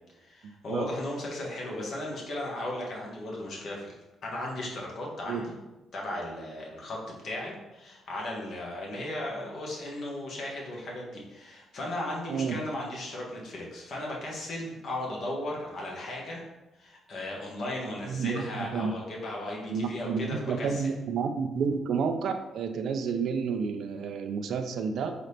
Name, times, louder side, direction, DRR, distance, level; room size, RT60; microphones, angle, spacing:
voice 1, 0.2-3.9 4.2-5.6 5.9-16.4 16.7-20.9, left 1 dB, 60° left, -2 dB, 1.4 m, -36 dB
voice 2, 18.1-18.9 19.7-25.1, right 5 dB, 70° right, 7 dB, 0.4 m, -30 dB
4.1 x 3.9 x 3.3 m, 1.0 s
cardioid pair, 90°, 0 cm